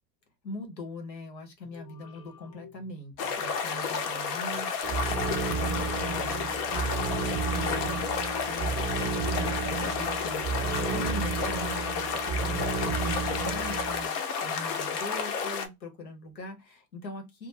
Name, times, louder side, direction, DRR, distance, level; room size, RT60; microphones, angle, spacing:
voice 1, 0.4-5.8 6.0-17.5, left 1 dB, 85° left, 1.1 m, -42 dB
sound 1, 1.6-8.5, left 8 dB, 40° left, 0.9 m, -53 dB
sound 2, 3.2-15.7, left 6 dB, 70° left, 0.8 m, -31 dB
sound 3, 4.8-14.1, right 5 dB, 15° right, 0.4 m, -32 dB
2.4 x 2.2 x 3.0 m
hypercardioid pair, 90°, 50 cm